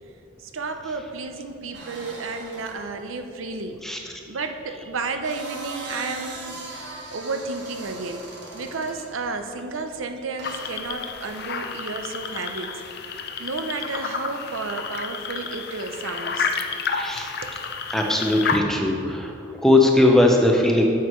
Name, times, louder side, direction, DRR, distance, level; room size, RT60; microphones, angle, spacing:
voice 1, 0.4-3.8 4.3-6.7 7.1-8.2 8.5-12.7 13.1-16.6 17.1-17.5, right 3 dB, 85° right, 6 dB, 0.6 m, -32 dB
sound 1, 1.7-2.8 4.9-9.1 10.4-11.2, right 2 dB, 60° right, 1.3 m, -39 dB
sound 2, 10.4-18.6, left 5 dB, 50° left, 0.5 m, -30 dB
voice 2, 16.9-17.3 17.9-19.3 19.6-20.8, left 1 dB, ahead, 1 dB, 0.6 m, -19 dB
9.5 x 7.8 x 3.1 m, 2.9 s
head